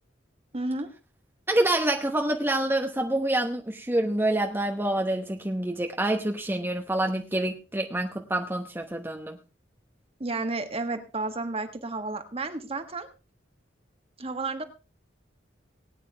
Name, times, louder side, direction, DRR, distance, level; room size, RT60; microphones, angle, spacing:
voice 1, 0.5-0.9 10.2-13.1 14.2-14.6, right 3 dB, 35° right, 8 dB, 1.5 m, -32 dB
voice 2, 1.5-9.4, right 1 dB, 10° right, 3 dB, 1.1 m, -27 dB
19.5 x 9.4 x 3.4 m, 0.32 s
head